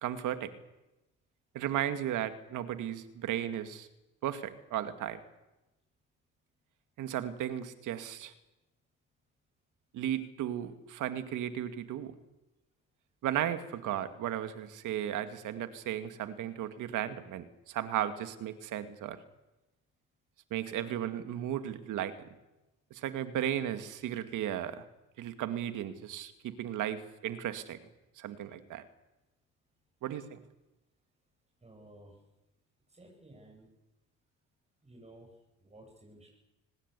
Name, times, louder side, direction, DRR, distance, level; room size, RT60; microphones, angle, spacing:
voice 1, 0.0-0.5 1.5-3.9 4.2-5.2 7.0-8.3 9.9-12.1 13.2-19.2 20.5-22.1 22.9-24.9 25.2-27.8 28.2-28.9 30.0-30.4, right 11 dB, 85° right, 10 dB, 2.1 m, -35 dB
voice 2, 31.6-32.2 32.9-33.7 34.8-35.3 35.6-36.3, right 1 dB, 20° right, 0 dB, 7.3 m, -54 dB
26.5 x 20.0 x 8.3 m, 0.99 s
cardioid pair, 90°, 30 cm